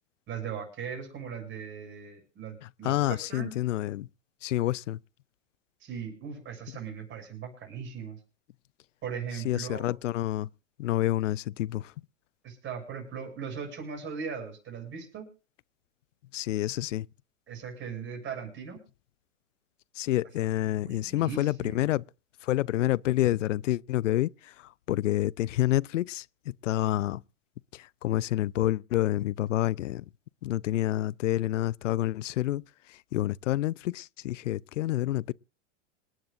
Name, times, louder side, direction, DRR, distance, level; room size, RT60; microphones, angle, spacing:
voice 1, 0.3-3.6 5.8-8.2 9.0-10.0 12.4-15.3 17.5-18.8 20.8-21.9, right 6 dB, 30° right, 7.7 m, -39 dB
voice 2, 2.8-4.1 4.4-5.0 9.5-10.5 10.8-11.8 16.3-17.1 20.0-22.0 22.5-24.3 24.9-26.2 26.6-27.2 28.0-30.0 30.4-32.6 33.1-35.3, left 14 dB, 85° left, 0.5 m, -28 dB
27.0 x 10.0 x 2.5 m
hypercardioid pair, 115°, 36 cm